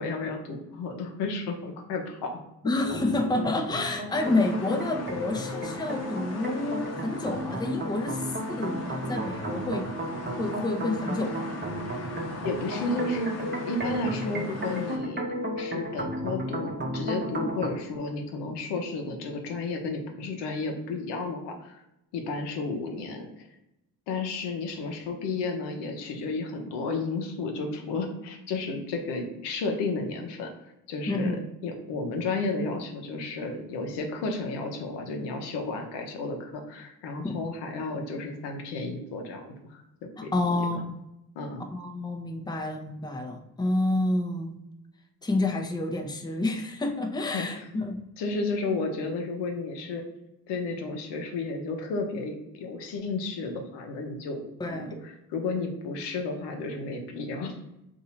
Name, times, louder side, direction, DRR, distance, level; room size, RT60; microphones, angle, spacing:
voice 1, 0.0-2.4 12.4-21.8 22.1-23.5 24.1-31.3 31.6-40.7 41.4-41.6 47.3-47.7 48.2-50.0 50.5-54.4 54.7-57.6, left 3 dB, 75° left, 3 dB, 0.8 m, -32 dB
voice 2, 2.6-8.3 8.6-9.8 10.4-11.5 31.1-31.4 37.2-37.3 40.2-41.0 41.7-44.6 45.2-48.0 54.6-54.9, left 2 dB, 10° left, 3 dB, 0.6 m, -29 dB
sound 1, 2.8-17.7, equal, 25° right, 0.9 m, -34 dB
sound 2, 4.1-15.0, left 2 dB, 40° left, 1.0 m, -40 dB
2.7 x 2.6 x 4.2 m, 0.87 s
supercardioid pair, 55°, 42 cm